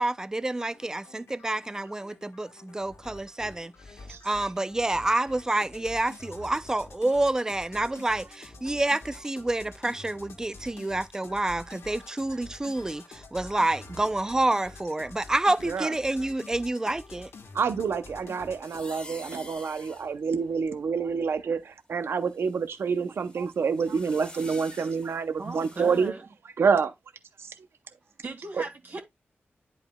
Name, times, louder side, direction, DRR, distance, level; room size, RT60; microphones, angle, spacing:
voice 1, 0.0-3.7 4.2-17.3, right 2 dB, 15° right, 0.4 m, -28 dB
sound 1, 0.7-18.8, left 3 dB, 85° left, 1.3 m, -48 dB
voice 2, 17.5-26.1 26.6-26.9 27.4-27.5, right 5 dB, 75° right, 0.6 m, -27 dB
sound 2, 18.6-21.6 22.2-26.1, left 2 dB, 25° left, 1.4 m, -48 dB
voice 3, 25.4-26.2 28.2-29.0, right 3 dB, 55° right, 2.3 m, -37 dB
10.5 x 4.8 x 2.2 m
wide cardioid pair, 140°, 4 cm